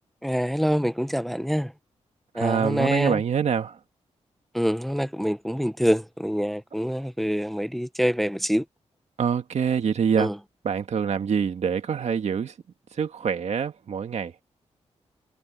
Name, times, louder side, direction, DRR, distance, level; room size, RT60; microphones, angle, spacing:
voice 1, 0.2-1.7 2.3-3.2 4.5-8.6 10.2-10.3, equal, ahead, 0.9 m, -25 dB
voice 2, 2.4-3.8 9.2-10.3 10.6-12.5 13.0-14.3, right 7 dB, 70° right, 1.8 m, -25 dB
cardioid pair, 90°, 12 cm